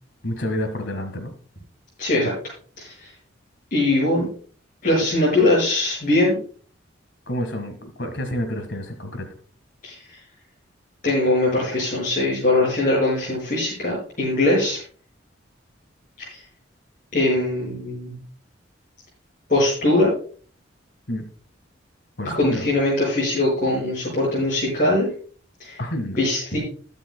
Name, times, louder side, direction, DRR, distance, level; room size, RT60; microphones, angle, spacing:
voice 1, 0.2-1.3 7.3-9.3 21.1-21.3 22.2-22.7 25.8-26.2, equal, 65° left, 5 dB, 1.7 m, -29 dB
voice 2, 2.0-2.3 2.8-3.1 3.7-4.3 4.8-6.4 9.8-10.2 11.0-14.8 16.2-16.4 17.1-18.2 19.5-20.1 22.3-25.1 25.6-25.8 26.2-26.6, left 2 dB, 45° left, -6 dB, 5.7 m, -21 dB
21.0 x 7.7 x 2.2 m, 0.43 s
head